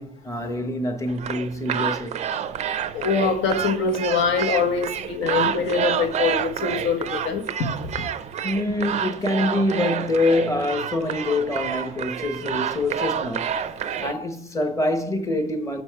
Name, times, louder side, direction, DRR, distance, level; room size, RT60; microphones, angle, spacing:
voice 1, 0.0-2.2 8.4-13.5 14.0-15.8, left 2 dB, 15° left, 0.9 m, -25 dB
sound 1, 1.1-14.1, right 8 dB, 35° right, 0.4 m, -29 dB
voice 2, 2.9-7.7 13.8-13.9, left 5 dB, 80° left, 1.4 m, -24 dB
7.0 x 7.0 x 4.6 m
cardioid pair, 175°, 19 cm